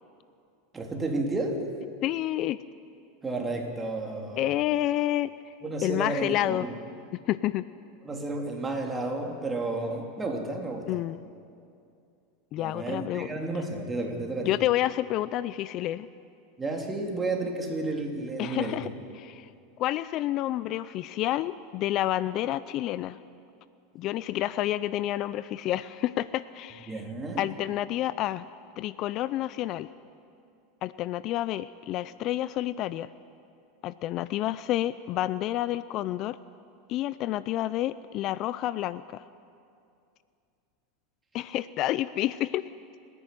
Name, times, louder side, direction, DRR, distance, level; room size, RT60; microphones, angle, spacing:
voice 1, 0.7-1.7 3.2-4.5 5.6-6.7 8.0-11.0 12.6-14.5 16.6-18.8 26.9-27.5, right 2 dB, 15° right, 1 dB, 3.4 m, -32 dB
voice 2, 2.0-2.6 4.4-5.3 5.8-6.7 7.1-7.6 10.9-11.2 12.5-13.3 14.4-16.1 18.4-18.9 19.1-19.5 19.8-23.2 23.9-27.0 27.4-28.5 28.8-29.9 30.8-33.1 33.8-36.4 36.9-39.2 41.3-42.7, left 14 dB, 50° left, 16 dB, 0.5 m, -29 dB
28.0 x 11.0 x 9.3 m, 2.5 s
hypercardioid pair, 110°, 0 cm